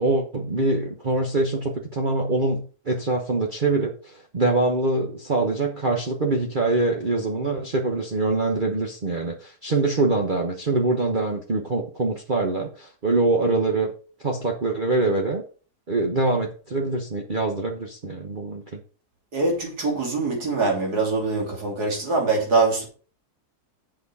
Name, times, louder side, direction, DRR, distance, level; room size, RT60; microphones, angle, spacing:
voice 1, 0.0-13.9 14.2-15.4 15.9-18.8, right 2 dB, 35° right, 1.2 m, -24 dB
voice 2, 19.3-22.9, right 3 dB, 85° right, 3.5 m, -23 dB
8.5 x 6.5 x 5.5 m
omnidirectional pair, 1.6 m